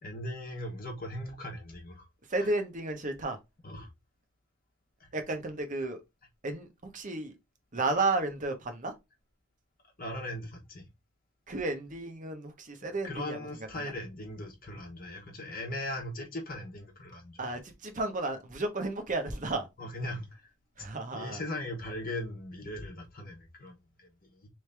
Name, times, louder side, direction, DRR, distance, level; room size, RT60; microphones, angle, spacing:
voice 1, 0.0-2.0 2.4-2.5 3.6-3.9 5.0-5.1 10.0-10.8 13.0-17.6 19.8-20.4 21.1-24.5, left 1 dB, 45° left, 1.1 m, -39 dB
voice 2, 2.3-3.4 5.1-6.0 6.4-7.4 7.7-8.9 11.5-13.8 17.4-19.7 20.8-21.4, right 2 dB, 40° right, 1.0 m, -33 dB
3.8 x 3.3 x 3.4 m
head